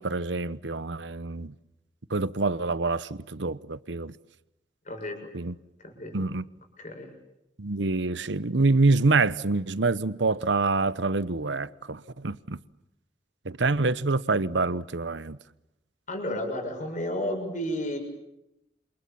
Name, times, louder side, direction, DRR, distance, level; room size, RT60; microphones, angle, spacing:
voice 1, 0.0-1.5 2.1-4.1 5.3-5.5 6.1-6.4 7.6-12.6 13.4-15.4, right 3 dB, 80° right, 1.0 m, -26 dB
voice 2, 4.9-5.2 5.8-6.3 6.8-7.1 16.1-18.0, left 1 dB, 45° left, 6.9 m, -32 dB
28.5 x 27.5 x 7.2 m
head